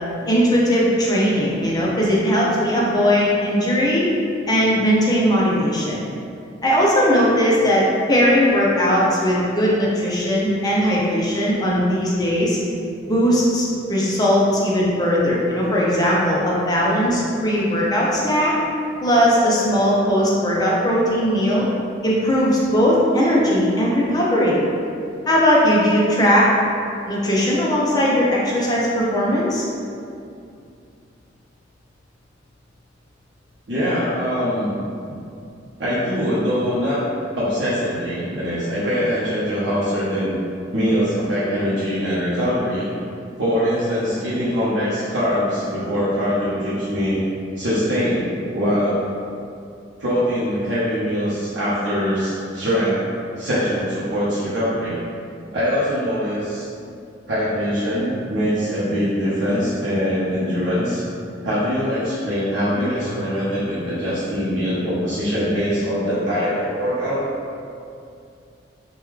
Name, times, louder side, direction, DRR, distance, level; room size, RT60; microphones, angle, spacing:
voice 1, 0.3-4.0 4.5-6.0 6.6-12.6 13.0-18.5 19.0-21.7 22.0-24.6 25.3-26.4 27.1-29.6, equal, 20° left, -5 dB, 0.5 m, -18 dB
voice 2, 33.7-34.7 35.8-37.0 37.3-40.3 40.7-42.9 43.4-47.2 47.6-48.3 48.5-49.0 50.0-53.0 53.4-55.0 55.5-56.7 57.3-61.0 61.4-67.2, equal, 65° right, -11 dB, 0.7 m, -22 dB
3.0 x 2.2 x 3.5 m, 2.5 s
head